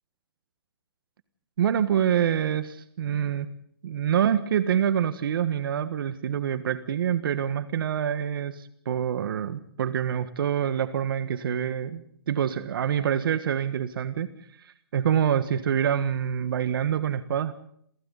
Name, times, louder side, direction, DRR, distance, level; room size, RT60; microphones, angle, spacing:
voice 1, 1.6-3.5 3.8-14.3 14.6-17.5, right 9 dB, 65° right, 11 dB, 1.6 m, -26 dB
29.0 x 28.5 x 4.1 m, 0.68 s
hypercardioid pair, 145°, 13 cm